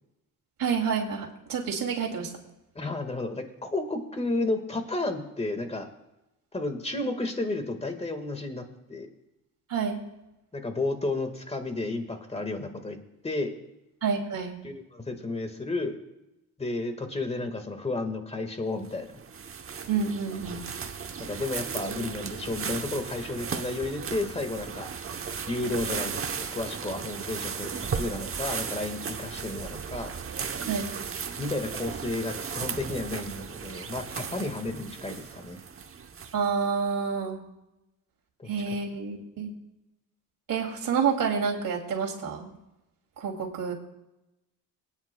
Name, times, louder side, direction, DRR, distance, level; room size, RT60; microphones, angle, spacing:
voice 1, 0.6-2.3 9.7-10.0 14.0-14.6 19.9-20.6 30.7-30.9 36.3-37.4 38.4-39.5 40.5-42.5 43.2-43.7, right 6 dB, 65° right, 0 dB, 2.8 m, -28 dB
voice 2, 2.8-5.9 6.5-9.1 10.5-13.0 13.2-13.5 14.6-16.0 16.6-19.1 21.3-24.9 25.5-30.1 31.4-35.6 38.4-38.5, left 2 dB, 20° left, 6 dB, 1.7 m, -32 dB
sound 1, 18.8-36.6, right 6 dB, 40° right, 0.9 m, -36 dB
23.0 x 9.7 x 2.3 m, 0.93 s
cardioid pair, 95°, 35 cm